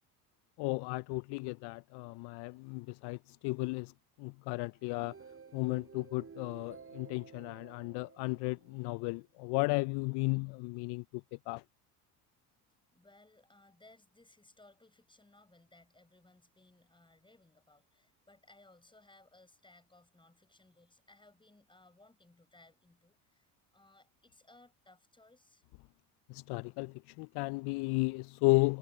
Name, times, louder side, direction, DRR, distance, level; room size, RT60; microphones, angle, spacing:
voice 1, 0.6-3.9 4.2-5.1 5.5-11.6 26.3-28.8, left 26 dB, 55° left, 0.6 m, -34 dB
sound 1, 4.7-9.0, right 5 dB, 30° right, 6.4 m, -54 dB
voice 2, 12.9-25.6, left 2 dB, 10° left, 7.7 m, -62 dB
hypercardioid pair, 80°, 47 cm